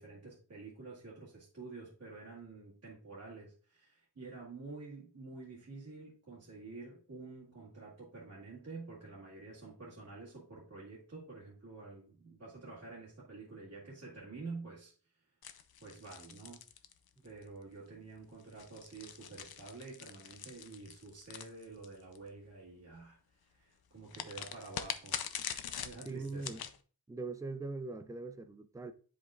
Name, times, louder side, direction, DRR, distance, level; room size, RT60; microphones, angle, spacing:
voice 1, 0.0-14.9 15.8-16.6 17.2-23.2 23.5-25.2 25.7-26.6, right 3 dB, 40° right, 1.9 m, -49 dB
sound 1, 15.4-17.4 18.4-22.2 24.1-26.8, left 8 dB, 60° left, 0.6 m, -43 dB
voice 2, 26.0-26.6 27.1-28.9, right 3 dB, 10° right, 0.4 m, -41 dB
10.5 x 5.0 x 2.4 m
wide cardioid pair, 180°, 41 cm